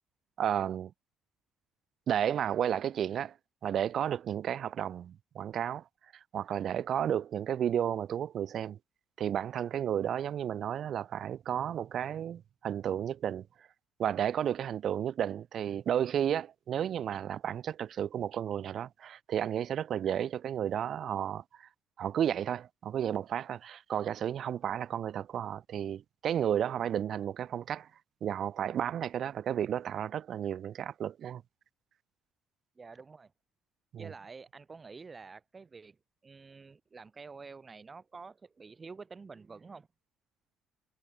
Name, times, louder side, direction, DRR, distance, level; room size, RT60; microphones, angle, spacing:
voice 1, 0.4-0.9 2.1-3.3 3.6-5.8 6.3-8.8 9.2-13.5 14.0-21.7 22.0-27.9 28.2-31.4 33.9-34.1, right 9 dB, 55° right, 0.5 m, -32 dB
voice 2, 32.8-33.3 34.0-39.9, right 4 dB, 30° right, 2.6 m, -48 dB
cardioid pair, 95°, 0 cm